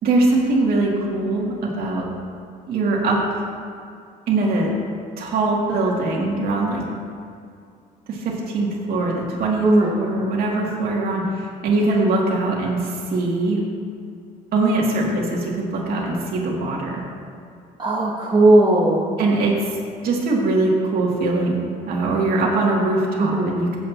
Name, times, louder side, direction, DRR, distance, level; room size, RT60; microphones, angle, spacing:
voice 1, 0.0-2.1 2.7-3.4 4.3-4.7 5.2-6.8 8.1-13.6 14.5-17.0 19.2-19.8 20.0-21.6 21.8-23.8, right 2 dB, 65° right, -3 dB, 2.5 m, -22 dB
voice 2, 9.6-9.9 17.8-19.1 23.2-23.6, right 2 dB, 25° right, -3 dB, 1.3 m, -17 dB
15.0 x 8.1 x 2.9 m, 2.3 s
cardioid pair, 110°, 17 cm